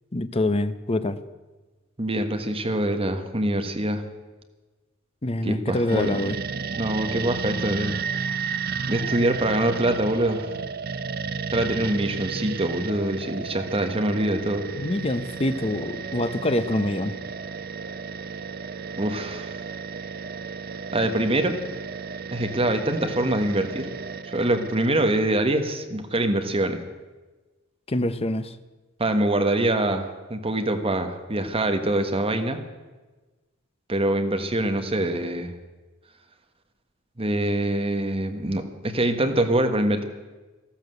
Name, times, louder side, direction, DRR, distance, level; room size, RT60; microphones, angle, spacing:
voice 1, 0.1-1.2 5.2-6.4 14.7-17.2 27.9-28.6, left 1 dB, 30° left, 11 dB, 0.7 m, -25 dB
voice 2, 2.0-4.0 5.4-6.1 6.8-8.2 8.9-10.5 11.5-14.6 19.0-19.6 20.9-21.6 22.3-23.9 24.3-26.8 29.0-32.6 33.9-35.5 37.2-40.0, right 1 dB, 30° right, 6 dB, 1.4 m, -24 dB
sound 1, 5.9-25.2, right 5 dB, 50° right, 0.5 m, -33 dB
13.5 x 13.5 x 7.9 m, 1.2 s
head